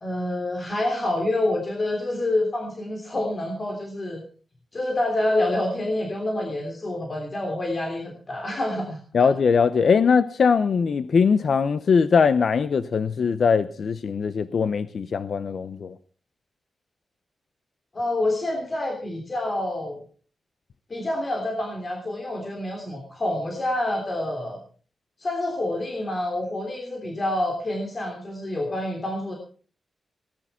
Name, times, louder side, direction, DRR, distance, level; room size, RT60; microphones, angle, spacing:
voice 1, 0.0-4.2 4.7-9.0 17.9-20.0 20.9-24.6 25.2-29.3, left 1 dB, 30° left, 3.2 m, -27 dB
voice 2, 9.1-15.9, left 5 dB, 55° left, 0.7 m, -21 dB
18.5 x 11.0 x 5.6 m
wide cardioid pair, 180°, 0 cm